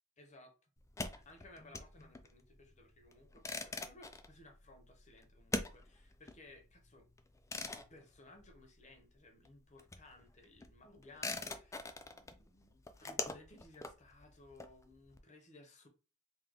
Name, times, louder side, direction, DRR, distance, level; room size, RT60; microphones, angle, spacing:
voice 1, 0.2-0.5 1.1-7.1 7.6-15.9, left 2 dB, 30° left, 0.8 m, -59 dB
sound 1, 0.8-9.1 9.4-15.2, left 3 dB, 15° left, 0.3 m, -44 dB
3.7 x 2.9 x 3.3 m
head